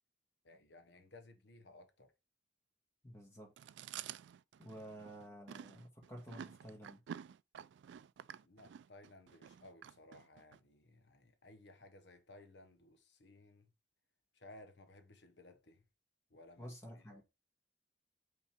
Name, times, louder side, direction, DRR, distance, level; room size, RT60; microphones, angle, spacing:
voice 1, 0.4-2.1 8.4-13.7 14.3-15.8 16.3-17.2, left 2 dB, 80° left, 1.1 m, -59 dB
voice 2, 3.0-3.5 4.6-7.0 16.6-17.2, equal, 15° left, 1.9 m, -51 dB
Chewing mastication, 3.6-10.6, right 9 dB, 80° right, 0.3 m, -51 dB
5.7 x 3.7 x 4.5 m
head